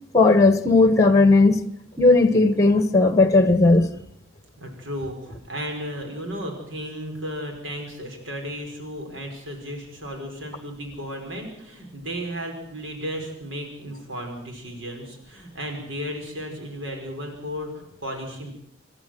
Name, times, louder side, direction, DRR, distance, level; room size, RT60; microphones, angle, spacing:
voice 1, 0.1-1.6 2.0-3.9, left 3 dB, 15° left, 1.3 m, -16 dB
voice 2, 4.6-18.5, equal, 75° right, 5.1 m, -34 dB
27.5 x 12.0 x 7.8 m
head